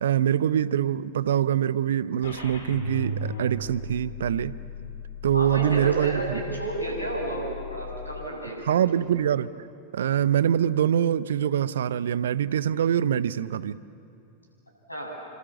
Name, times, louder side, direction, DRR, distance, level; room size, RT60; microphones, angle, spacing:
voice 1, 0.0-4.6 5.2-6.4 8.7-9.5 9.9-13.8, right 10 dB, 60° right, 17 dB, 0.7 m, -24 dB
sound 1, 2.2-8.3, left 1 dB, 65° left, 4.2 m, -36 dB
voice 2, 5.3-8.8 14.9-15.1, right 1 dB, 85° left, 0 dB, 7.8 m, -32 dB
29.5 x 25.5 x 7.3 m, 2.7 s
figure-of-eight pair, 90°, 0 cm